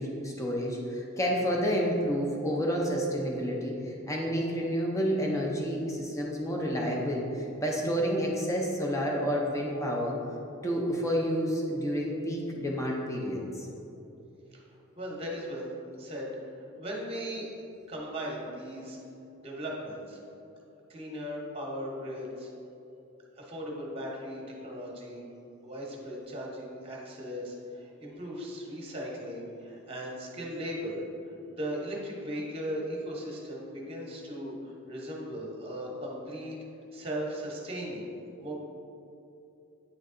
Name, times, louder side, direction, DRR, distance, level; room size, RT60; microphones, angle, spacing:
voice 1, 0.0-10.2 10.6-13.7, equal, 15° left, -2 dB, 0.7 m, -30 dB
voice 2, 15.0-16.3 16.8-17.5 17.9-19.0 19.3-20.2 20.9-22.5 23.4-25.2 25.6-31.0 31.5-36.6 36.9-38.1 38.4-38.6, equal, 25° right, -2 dB, 1.0 m, -37 dB
8.9 x 3.2 x 3.8 m, 2.8 s
head